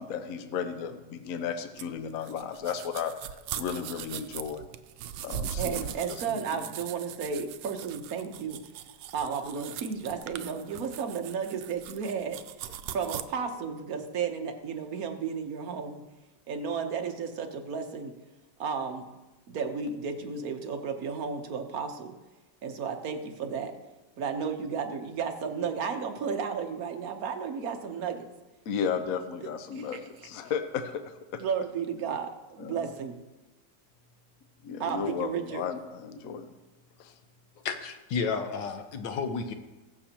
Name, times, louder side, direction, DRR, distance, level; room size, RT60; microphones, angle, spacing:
voice 1, 0.0-3.1 3.5-4.7 5.2-6.6 12.8-12.9 28.7-31.4 32.6-32.9 34.6-36.5 37.0-37.1, left 7 dB, 60° left, 8 dB, 1.1 m, -34 dB
sound 1, 1.8-13.2, right 10 dB, 90° right, 1.3 m, -40 dB
voice 2, 5.6-8.6 9.1-12.4 12.9-16.0 16.5-18.1 18.6-19.1 19.5-22.1 22.6-23.7 24.2-28.2 29.8-30.0 31.4-33.2 34.8-35.6, right 6 dB, 60° right, 5 dB, 1.4 m, -33 dB
voice 3, 37.6-39.5, left 5 dB, 85° left, 7 dB, 1.6 m, -32 dB
21.0 x 7.1 x 2.9 m, 1.1 s
omnidirectional pair, 1.9 m